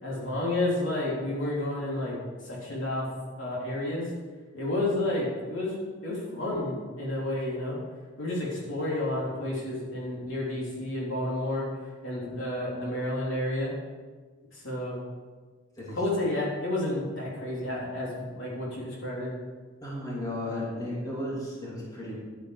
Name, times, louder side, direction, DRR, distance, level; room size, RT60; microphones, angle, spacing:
voice 1, 0.0-2.2 2.4-3.1 3.4-4.1 4.5-5.7 6.0-7.8 8.2-11.6 12.0-13.7 14.5-15.0 15.9-19.3, left 1 dB, 65° left, -4 dB, 3.5 m, -30 dB
voice 2, 19.8-22.2, left 1 dB, 20° left, -6 dB, 2.7 m, -34 dB
12.0 x 8.9 x 4.9 m, 1.4 s
head